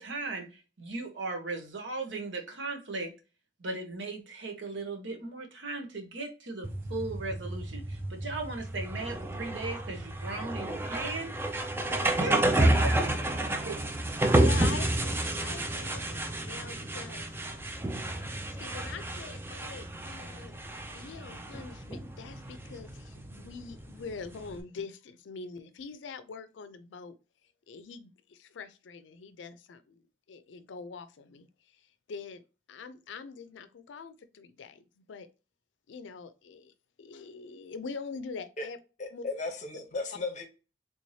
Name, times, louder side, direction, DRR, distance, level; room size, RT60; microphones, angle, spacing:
voice 1, 0.0-3.1 3.6-11.3 11.9-13.0 13.6-13.8, right 3 dB, 80° right, 0.9 m, -37 dB
sound 1, 6.6-24.6, right 1 dB, 10° right, 0.3 m, -30 dB
voice 2, 14.3-17.4 18.6-20.6 20.9-27.2 27.7-31.5 32.1-32.4 32.7-35.3 35.9-38.8 39.1-39.2, left 5 dB, 80° left, 0.4 m, -44 dB
voice 3, 39.0-40.4, left 3 dB, 40° left, 0.8 m, -35 dB
3.4 x 3.1 x 2.7 m
head